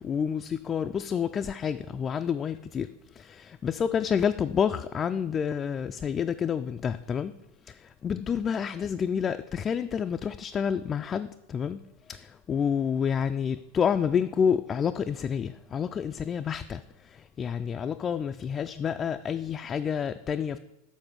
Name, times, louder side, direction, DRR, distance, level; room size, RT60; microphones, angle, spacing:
voice 1, 0.0-7.3 7.7-11.8 12.1-20.6, left 7 dB, 25° left, 8 dB, 0.3 m, -29 dB
7.3 x 4.2 x 6.2 m, 0.91 s
figure-of-eight pair, 90°, 0 cm